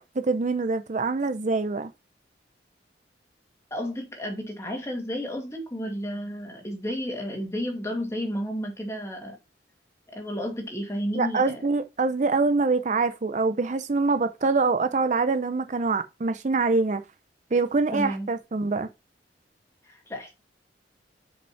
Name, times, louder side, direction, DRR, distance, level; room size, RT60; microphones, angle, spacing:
voice 1, 0.2-1.9 11.1-17.0 17.5-18.9, right 3 dB, 40° right, 0.5 m, -24 dB
voice 2, 3.7-9.4 10.1-11.6 17.9-18.3 19.8-20.3, equal, 15° left, 2.2 m, -32 dB
6.7 x 5.2 x 4.5 m
head